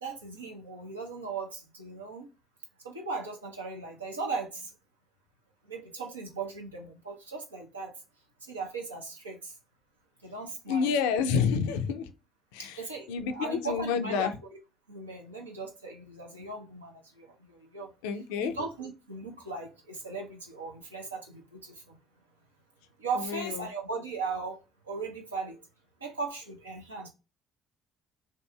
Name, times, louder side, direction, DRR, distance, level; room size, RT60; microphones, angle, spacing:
voice 1, 0.0-2.3 2.8-4.7 5.7-7.9 8.4-9.5 10.2-11.0 12.6-14.3 14.9-22.0 23.0-24.6 24.9-25.6 26.0-27.1, right 4 dB, 90° right, 0.6 m, -38 dB
voice 2, 10.7-12.0 12.5-12.7 13.1-14.3 18.0-18.5 23.3-23.4, left 6 dB, 70° left, 0.3 m, -28 dB
2.7 x 2.5 x 2.2 m
figure-of-eight pair, 50°, 0 cm